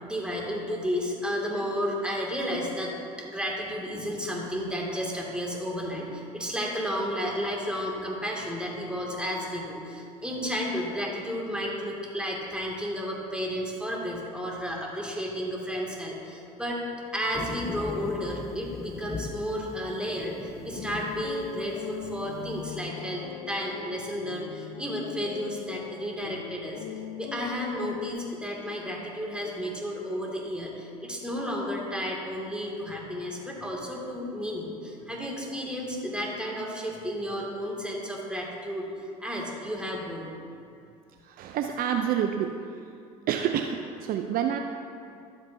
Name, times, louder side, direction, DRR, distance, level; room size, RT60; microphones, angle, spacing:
voice 1, 0.0-16.8 17.1-26.8 27.2-38.9 39.2-40.3, equal, 5° right, -2 dB, 2.2 m, -32 dB
sound 1, 17.3-22.9, left 3 dB, 15° left, 0.5 m, -40 dB
sound 2, 20.7-28.1, left 9 dB, 80° left, 0.5 m, -40 dB
voice 2, 41.2-42.5 43.3-44.6, right 9 dB, 55° right, 5 dB, 0.5 m, -28 dB
12.0 x 8.0 x 2.7 m, 2.4 s
hypercardioid pair, 75°, 18 cm